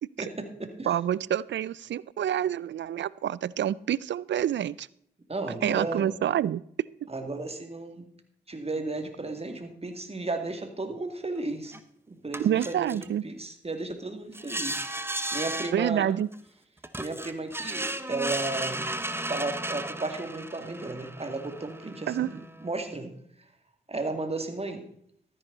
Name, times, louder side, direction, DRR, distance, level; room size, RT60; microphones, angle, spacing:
voice 1, 0.2-0.9 5.3-6.1 7.1-8.1 8.5-11.8 12.1-13.0 13.2-16.1 17.0-18.9 19.3-23.1 23.9-24.8, right 2 dB, 30° right, 6 dB, 2.3 m, -34 dB
voice 2, 0.8-4.9 5.6-6.6 7.0-7.1 12.4-13.2 15.7-16.3 22.1-22.3, right 10 dB, 70° right, 22 dB, 0.4 m, -27 dB
sound 1, 11.7-11.8 12.3-13.1 14.3-15.8 16.3-16.4 16.8-23.0, right 1 dB, 10° right, 1.0 m, -35 dB
13.0 x 10.0 x 4.0 m, 0.66 s
supercardioid pair, 45°, 19 cm